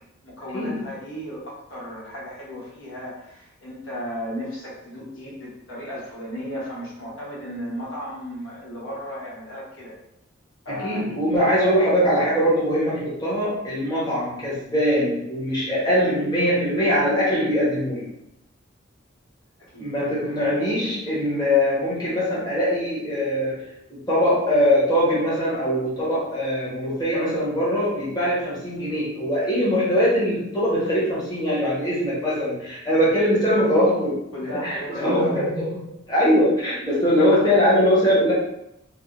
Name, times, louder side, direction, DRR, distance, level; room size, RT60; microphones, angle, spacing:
voice 1, 0.2-10.0 10.6-11.0 19.6-19.9 34.3-35.4, equal, 80° left, -5 dB, 1.0 m, -34 dB
voice 2, 10.7-18.1 19.8-34.2 34.6-35.7 36.1-38.3, equal, 20° left, -8 dB, 0.9 m, -22 dB
3.4 x 2.0 x 2.4 m, 0.80 s
head